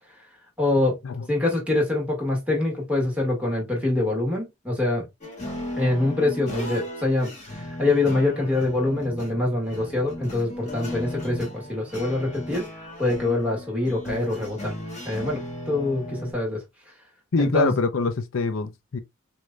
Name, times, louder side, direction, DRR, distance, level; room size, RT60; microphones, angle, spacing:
voice 1, 0.6-1.0 1.3-5.0 5.8-12.7 13.0-14.7 15.0-16.6 17.4-17.7, left 2 dB, 5° right, 1.7 m, -24 dB
sound 1, 5.2-16.3, left 1 dB, 35° left, 1.5 m, -36 dB
voice 2, 17.3-19.0, left 4 dB, 70° left, 0.5 m, -24 dB
6.2 x 2.7 x 2.2 m
head